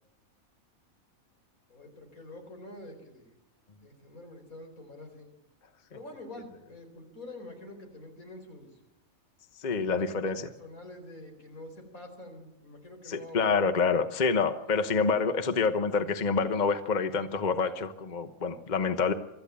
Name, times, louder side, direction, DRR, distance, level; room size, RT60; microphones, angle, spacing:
voice 1, 1.7-3.3 3.8-5.3 5.9-8.8 9.7-13.7, left 1 dB, 85° left, 5 dB, 4.7 m, -46 dB
voice 2, 9.6-10.4 13.1-19.1, left 5 dB, 35° left, 10 dB, 1.1 m, -27 dB
24.0 x 14.0 x 8.7 m, 0.94 s
omnidirectional pair, 1.4 m